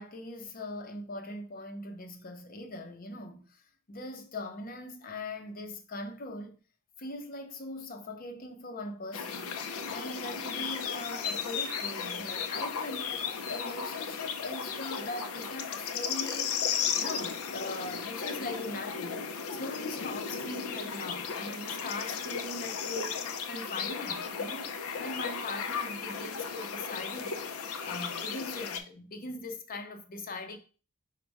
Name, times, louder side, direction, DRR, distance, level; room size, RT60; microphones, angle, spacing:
voice 1, 0.0-6.6 7.0-9.6 9.9-13.2 13.5-16.6 17.0-30.6, left 2 dB, 45° left, 0.6 m, -41 dB
sound 1, 9.1-28.8, left 6 dB, 85° left, 0.5 m, -35 dB
5.2 x 2.2 x 4.6 m
head